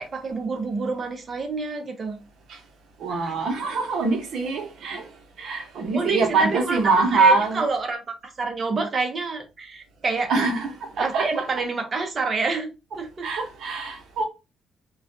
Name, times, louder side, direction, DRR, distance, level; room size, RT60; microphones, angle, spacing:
voice 1, 0.0-2.2 3.1-3.3 5.9-6.8 7.1-10.3 11.0-13.3, right 3 dB, 40° right, 0.7 m, -28 dB
voice 2, 3.0-5.1 5.4-7.6 10.3-11.3 13.2-14.2, right 4 dB, 70° right, 0.8 m, -23 dB
2.4 x 2.1 x 2.6 m
cardioid pair, 90°, 0 cm